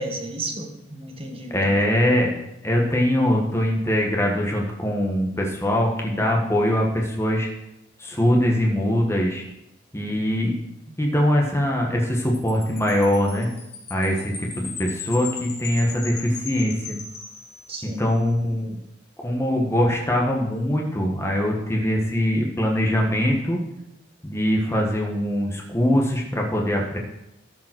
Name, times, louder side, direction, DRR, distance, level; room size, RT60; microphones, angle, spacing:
voice 1, 0.0-1.9 10.1-10.9 17.7-18.1, right 2 dB, 30° right, 2 dB, 1.7 m, -34 dB
voice 2, 1.5-2.3 2.6-7.5 8.0-9.4 9.9-10.5 11.0-13.5 13.9-17.0 17.8-18.8 19.2-23.6 24.2-27.0, left 1 dB, 15° left, 0 dB, 1.5 m, -22 dB
Wind chime, 12.3-18.0, left 5 dB, 60° left, 2.4 m, -38 dB
13.5 x 5.4 x 6.0 m, 0.86 s
head